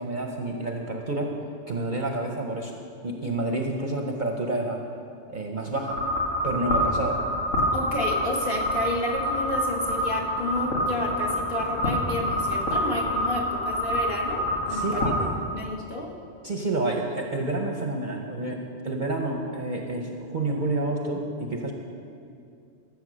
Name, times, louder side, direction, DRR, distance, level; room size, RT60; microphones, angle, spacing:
voice 1, 0.0-1.4 1.7-2.7 3.0-4.8 5.3-6.0 6.4-7.2 14.7-15.3 16.4-21.7, right 2 dB, 45° right, 1 dB, 0.8 m, -29 dB
sound 1, 5.9-15.2, equal, 90° left, 2.1 m, -27 dB
voice 2, 7.7-15.2 15.5-16.2, left 2 dB, 45° left, 0 dB, 1.4 m, -31 dB
13.0 x 7.2 x 6.2 m, 2.4 s
omnidirectional pair, 1.4 m